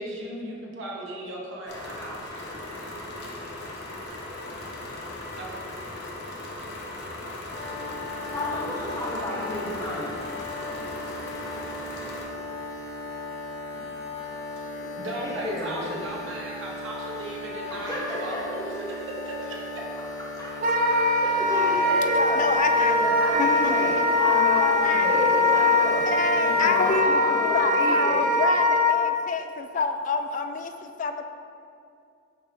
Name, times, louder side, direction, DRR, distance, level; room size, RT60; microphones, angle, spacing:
voice 1, 0.0-2.9 5.4-5.5 15.0-18.7 19.1-19.8, right 1 dB, 80° right, -3 dB, 1.1 m, -37 dB
sound 1, 1.7-12.2, left 1 dB, 60° left, 0.9 m, -38 dB
sound 2, 7.5-27.0, left 2 dB, 75° left, 1.3 m, -37 dB
voice 2, 8.3-10.2 14.7-15.0 15.2-16.0 17.7-18.6 20.2-22.5 23.0-26.1 26.4-28.3, left 1 dB, 20° left, -6 dB, 1.3 m, -32 dB
Wind instrument woodwind instrument, 20.6-29.0, left 2 dB, 45° right, 0.4 m, -22 dB
voice 3, 22.4-23.0 23.4-24.0 24.8-25.4 26.1-27.1 27.4-31.2, left 5 dB, 40° left, 7 dB, 0.3 m, -28 dB
10.0 x 3.5 x 2.8 m, 2.4 s
head